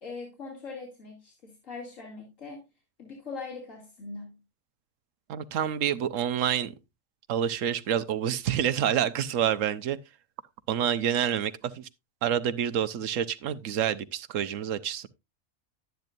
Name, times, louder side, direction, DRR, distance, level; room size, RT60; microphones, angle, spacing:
voice 1, 0.0-2.6 3.0-4.4, left 4 dB, 90° left, 3.0 m, -41 dB
voice 2, 5.3-6.8 7.3-10.0 10.7-11.9 12.2-15.1, right 9 dB, 90° right, 1.1 m, -28 dB
12.0 x 9.2 x 2.5 m
omnidirectional pair, 1.3 m